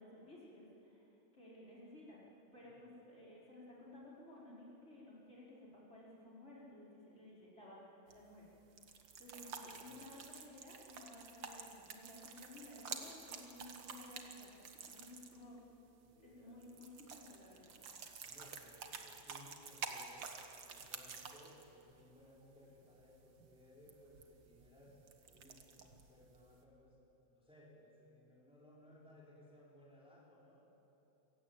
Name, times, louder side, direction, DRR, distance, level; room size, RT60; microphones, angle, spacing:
voice 1, 0.0-8.5 9.2-15.6 16.2-18.1, left 1 dB, 35° left, -6 dB, 5.0 m, -56 dB
sound 1, 8.1-26.6, right 6 dB, 70° right, 2.2 m, -51 dB
voice 2, 9.6-10.2 16.0-16.7 18.2-20.3 20.6-30.6, left 1 dB, 5° right, -5 dB, 4.0 m, -62 dB
26.5 x 16.0 x 9.0 m, 2.9 s
omnidirectional pair, 2.1 m